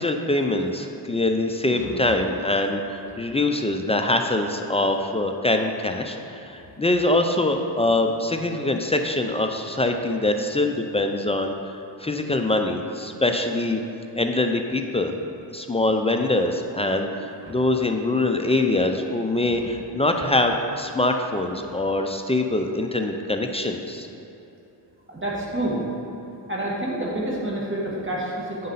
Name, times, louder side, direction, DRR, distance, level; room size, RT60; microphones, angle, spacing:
voice 1, 0.0-11.5 12.0-13.8 14.1-15.1 15.5-24.1, left 2 dB, 15° left, 4 dB, 0.4 m, -23 dB
voice 2, 25.1-25.8 26.5-28.7, right 1 dB, 25° right, -5 dB, 1.7 m, -28 dB
9.3 x 5.3 x 3.9 m, 3.0 s
cardioid pair, 90°, 44 cm